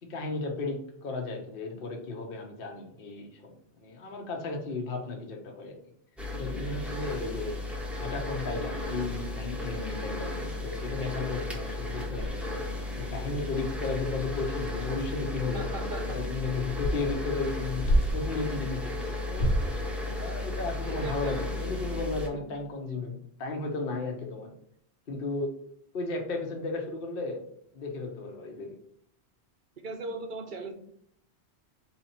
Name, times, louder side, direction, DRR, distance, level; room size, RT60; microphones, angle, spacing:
voice 1, 0.0-5.7 6.4-7.6 8.0-12.4 13.0-15.6 16.1-17.9 18.1-19.5 20.1-24.5 25.1-25.5 25.9-27.4 27.7-28.7, left 3 dB, 55° left, 1 dB, 1.0 m, -34 dB
sound 1, 6.2-22.3, left 2 dB, ahead, 0.6 m, -34 dB
sound 2, 12.1-18.4 19.2-19.8, equal, 75° left, 1.2 m, -32 dB
voice 2, 15.5-16.2 20.8-21.6 29.8-30.7, right 3 dB, 55° right, 5 dB, 0.7 m, -38 dB
4.2 x 2.8 x 4.1 m, 0.67 s
omnidirectional pair, 1.2 m